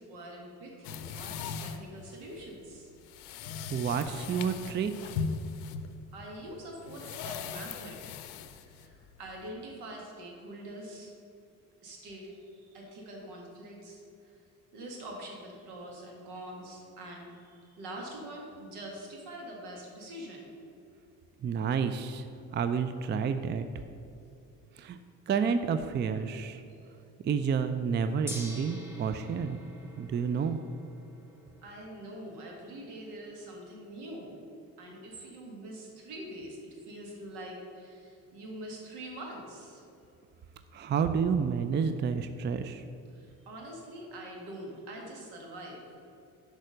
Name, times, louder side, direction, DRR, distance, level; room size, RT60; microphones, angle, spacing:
voice 1, 0.0-2.9 6.1-8.2 8.5-11.1 11.8-14.3 14.7-20.5 31.6-34.3 34.8-36.6 36.9-39.9 43.1-45.8, right 1 dB, 75° right, 0 dB, 1.8 m, -44 dB
sound 1, 0.8-9.5, left 6 dB, 80° left, 0.6 m, -39 dB
voice 2, 3.7-4.9 21.4-22.3 22.5-23.7 24.8-25.0 25.3-26.6 27.2-29.6 30.0-30.6 40.7-42.8, right 6 dB, 30° right, 10 dB, 0.4 m, -29 dB
Gong, 28.3-38.5, equal, 5° right, 1.7 m, -50 dB
6.4 x 4.8 x 6.4 m, 2.6 s
hypercardioid pair, 60°, 41 cm